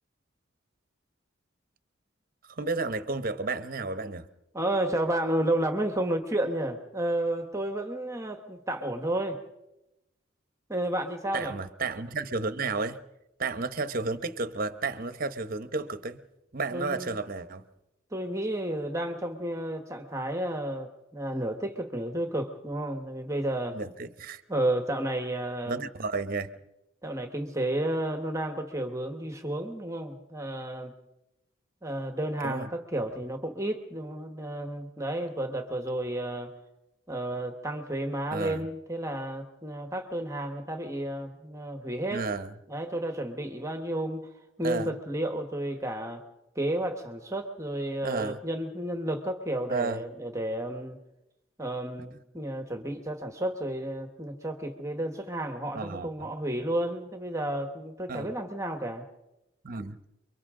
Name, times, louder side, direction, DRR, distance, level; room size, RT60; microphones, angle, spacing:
voice 1, 2.5-4.3 11.3-13.0 13.4-16.2 16.5-17.6 23.7-24.4 25.7-26.6 32.4-32.7 38.3-38.6 42.1-42.5 44.6-44.9 48.0-48.4 49.7-50.0 55.7-56.1 58.1-58.3 59.6-60.0, right 3 dB, 45° right, 1.0 m, -32 dB
voice 2, 4.5-9.4 10.7-11.6 16.7-17.2 18.1-23.8 24.5-25.8 27.0-30.9 31.8-36.5 37.1-42.3 42.7-44.2 44.6-46.2 46.5-51.0 51.6-59.0, right 1 dB, 15° right, 1.4 m, -32 dB
29.5 x 23.5 x 3.8 m
head